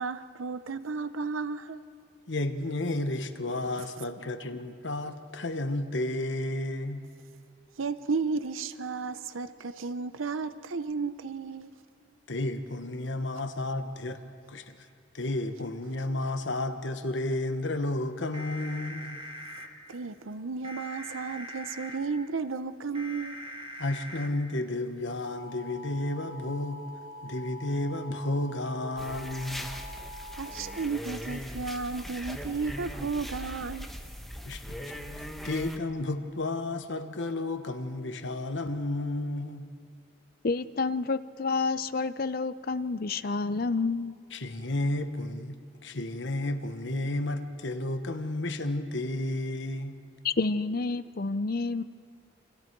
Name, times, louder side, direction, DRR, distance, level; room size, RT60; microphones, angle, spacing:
voice 1, 0.0-1.8 7.8-11.7 19.9-23.4 30.4-33.9, right 4 dB, 90° right, 0.7 m, -33 dB
voice 2, 2.3-7.0 12.3-14.2 14.5-14.8 15.1-19.2 23.8-26.8 27.2-29.6 34.5-39.7 44.3-50.0, left 2 dB, 65° left, 1.1 m, -32 dB
sound 1, 18.3-19.7 20.6-22.0 22.9-24.3 25.2-30.8, equal, 30° right, 1.8 m, -43 dB
sound 2, 29.0-35.8, equal, ahead, 1.1 m, -39 dB
voice 3, 40.4-44.2 50.2-51.8, left 4 dB, 50° left, 0.6 m, -29 dB
29.0 x 26.0 x 4.6 m
head